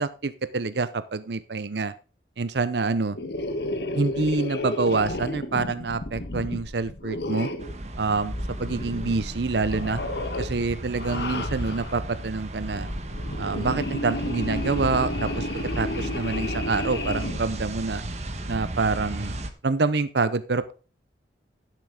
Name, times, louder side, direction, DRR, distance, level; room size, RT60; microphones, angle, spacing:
voice 1, 0.0-1.9 2.4-3.2 3.9-7.5 8.0-10.0 10.4-12.9 13.4-15.5 15.8-18.0 18.5-19.4 19.6-20.7, right 3 dB, 75° right, 15 dB, 0.7 m, -26 dB
sound 1, 3.1-7.8 8.2-9.4 9.6-10.5 10.9-12.0 12.7-17.4, left 1 dB, 70° left, 1.4 m, -32 dB
sound 2, 7.6-19.5, right 1 dB, 40° right, 1.2 m, -34 dB
12.0 x 7.7 x 3.7 m, 0.35 s
head